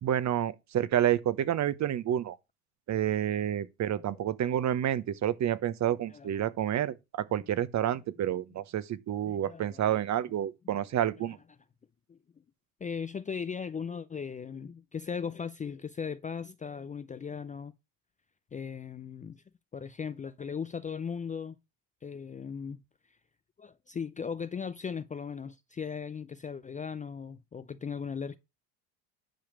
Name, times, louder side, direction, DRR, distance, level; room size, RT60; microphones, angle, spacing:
voice 1, 0.0-2.4 2.9-6.9 7.3-11.4, right 11 dB, 35° right, 1.1 m, -29 dB
voice 2, 6.1-6.5 8.3-8.4 9.2-9.8 12.1-12.2 12.8-17.7 18.5-19.4 19.7-21.6 22.0-22.8 23.6-28.4, left 6 dB, 15° left, 0.6 m, -38 dB
10.5 x 4.9 x 6.1 m
hypercardioid pair, 80°, 46 cm